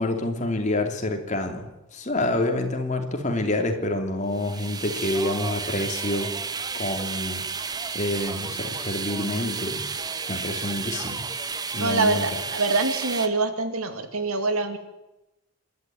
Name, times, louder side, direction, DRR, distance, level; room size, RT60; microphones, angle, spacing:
voice 1, 0.0-7.4 7.9-9.8 10.3-11.2 11.7-12.3, left 1 dB, 35° left, 4 dB, 3.0 m, -27 dB
sound 1, 4.3-13.3, right 5 dB, 20° right, 0.8 m, -32 dB
voice 2, 11.8-14.8, right 3 dB, 85° right, 8 dB, 2.5 m, -25 dB
27.0 x 12.0 x 9.3 m, 0.97 s
head